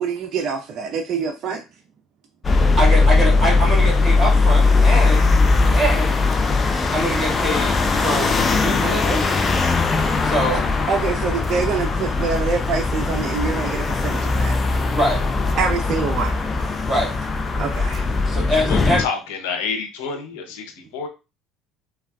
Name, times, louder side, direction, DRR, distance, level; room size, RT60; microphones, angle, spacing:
voice 1, 0.0-1.6 10.9-14.6 15.6-16.3 17.6-18.1, right 5 dB, 55° right, 0.4 m, -25 dB
sound 1, 2.4-19.1, left 3 dB, 30° left, 0.5 m, -19 dB
voice 2, 2.8-5.3 5.7-6.2 6.9-9.4 10.2-10.7 14.9-15.2 16.9-17.1 18.3-19.1, equal, 5° left, 1.7 m, -24 dB
voice 3, 18.7-20.6 20.9-21.1, left 5 dB, 85° left, 0.6 m, -28 dB
3.4 x 2.3 x 2.2 m
supercardioid pair, 85°, 0 cm